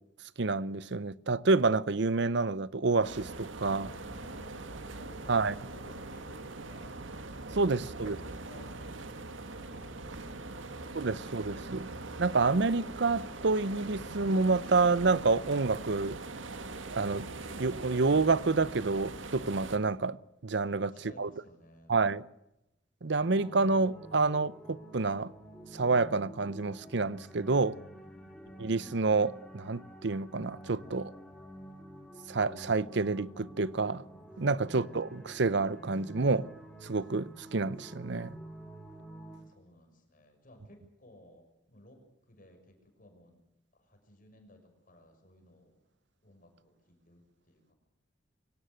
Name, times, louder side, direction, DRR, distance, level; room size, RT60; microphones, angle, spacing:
voice 1, 0.4-3.9 5.3-5.5 7.6-8.2 10.9-11.9 12.2-16.2 16.9-17.3 17.6-20.2 20.4-20.9 21.2-21.3 21.9-22.2 23.0-25.3 25.7-27.8 28.6-31.1 32.3-34.0 34.4-36.5 36.8-38.4, right 3 dB, 65° right, 0.7 m, -28 dB
sound 1, 3.0-19.8, right 2 dB, 85° right, 1.7 m, -42 dB
voice 2, 3.9-5.4 5.7-7.0 7.5-9.1 9.4-10.2 20.7-21.9 27.9-28.3 34.3-34.7 39.5-42.0 42.3-43.4 43.7-45.8 46.2-47.7, left 1 dB, 45° left, 6.2 m, -57 dB
sound 2, 23.2-39.4, right 1 dB, 5° left, 5.4 m, -49 dB
24.0 x 18.0 x 8.1 m
head